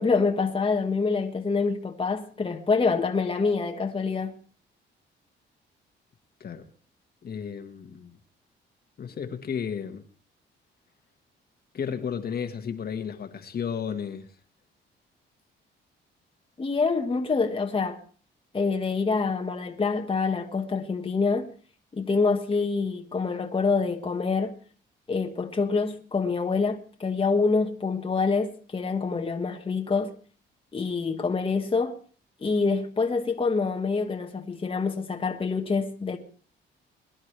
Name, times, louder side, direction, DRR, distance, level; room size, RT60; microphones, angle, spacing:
voice 1, 0.0-4.4 16.6-18.0 18.5-21.5 21.9-24.5 25.1-30.1 30.7-32.0 32.4-36.2, left 4 dB, 25° left, 1.4 m, -26 dB
voice 2, 7.2-8.2 9.0-10.0 11.7-14.3, left 7 dB, 50° left, 1.6 m, -33 dB
22.5 x 11.0 x 3.3 m
cardioid pair, 90°, 20 cm